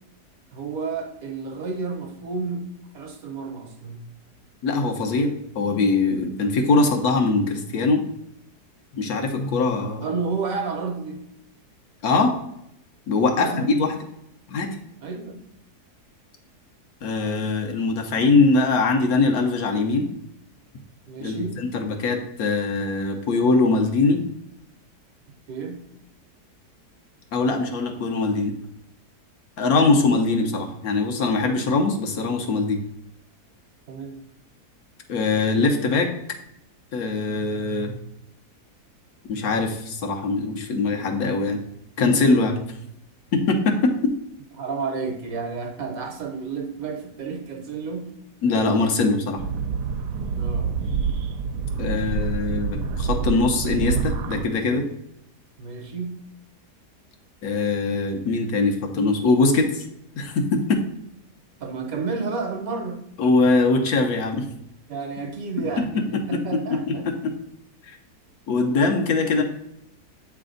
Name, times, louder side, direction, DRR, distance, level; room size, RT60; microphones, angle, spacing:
voice 1, 0.5-4.0 10.0-11.2 13.3-13.7 15.0-15.4 21.1-21.7 25.5-25.8 33.9-34.2 44.6-48.2 50.3-50.8 55.6-56.2 61.6-63.1 64.9-67.1, right 4 dB, 65° right, 4 dB, 1.2 m, -31 dB
voice 2, 4.6-5.3 5.5-8.0 9.0-10.1 12.0-12.3 13.1-13.9 14.5-14.8 17.0-20.1 21.2-24.2 27.3-28.5 29.6-32.8 35.1-36.1 36.9-38.0 39.3-41.6 42.0-42.6 43.3-43.9 48.4-49.4 51.8-54.8 57.4-59.8 60.2-60.8 63.2-64.5 66.3-66.4 66.9-67.3 67.9-68.0 68.5-69.4, left 3 dB, 70° left, 3 dB, 1.2 m, -22 dB
sound 1, 49.4-54.4, right 5 dB, 85° right, 1.2 m, -27 dB
7.8 x 3.3 x 3.8 m, 0.78 s
omnidirectional pair, 1.7 m